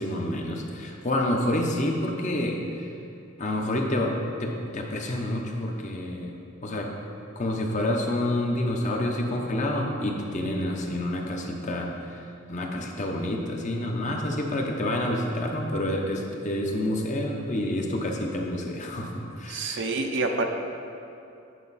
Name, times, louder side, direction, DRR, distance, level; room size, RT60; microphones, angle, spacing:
voice 1, 0.0-2.6 3.4-4.1 4.4-6.4 6.6-6.9 7.4-12.2 12.5-19.9, left 1 dB, 35° left, 1 dB, 0.8 m, -28 dB
voice 2, 19.5-20.4, right 3 dB, 60° right, 4 dB, 0.6 m, -27 dB
9.1 x 5.5 x 4.1 m, 2.7 s
head